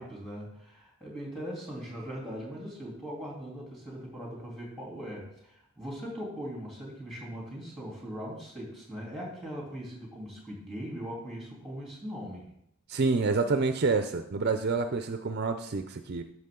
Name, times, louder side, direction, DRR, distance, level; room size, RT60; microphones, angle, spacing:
voice 1, 0.0-12.5, equal, ahead, -3 dB, 3.1 m, -40 dB
voice 2, 12.9-16.2, right 4 dB, 45° right, 8 dB, 0.4 m, -28 dB
13.0 x 6.1 x 3.8 m, 0.73 s
head